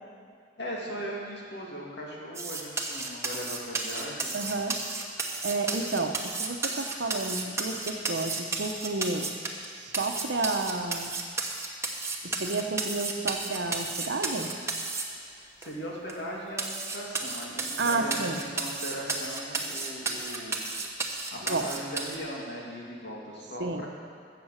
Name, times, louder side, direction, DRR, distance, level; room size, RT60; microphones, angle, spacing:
voice 1, 0.6-4.3 15.6-20.6 21.3-23.9, equal, 65° left, -3 dB, 2.6 m, -38 dB
sound 1, 2.3-9.7 9.9-15.0 15.6-15.7 16.1-16.2 16.6-22.2, right 3 dB, 15° right, 1.1 m, -33 dB
voice 2, 4.3-4.8 5.4-9.3 9.7-11.1 12.2-14.5 17.8-18.4 21.5-21.7 23.6-23.8, right 3 dB, 65° right, 5 dB, 0.9 m, -31 dB
15.5 x 6.9 x 6.6 m, 2.3 s
head